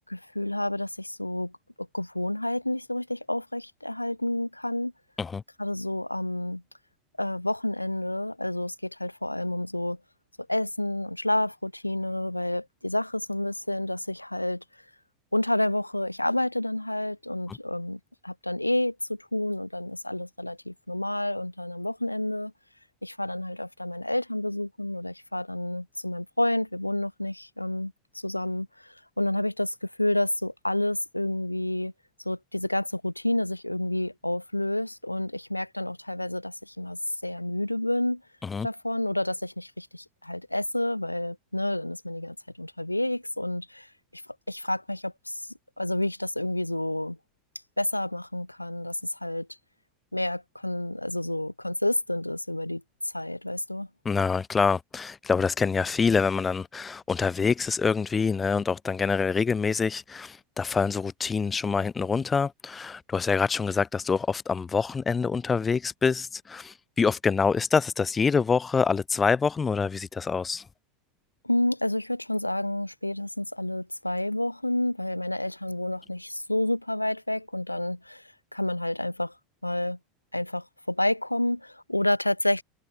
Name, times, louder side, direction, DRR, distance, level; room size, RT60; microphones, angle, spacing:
voice 1, 0.1-1.5 1.8-4.9 5.6-6.6 7.2-10.0 10.5-14.6 15.3-22.5 23.0-31.9 32.2-38.2 38.6-43.9 44.1-44.2 44.5-45.4 45.8-47.2 47.8-49.5 50.1-52.8 53.1-53.9 71.4-78.2 78.5-79.3 79.6-80.0 80.3-82.6, left 1 dB, 90° left, 1.0 m, -29 dB
voice 2, 54.0-70.6, left 5 dB, 20° left, 0.6 m, -26 dB
figure-of-eight pair, 80°, 0 cm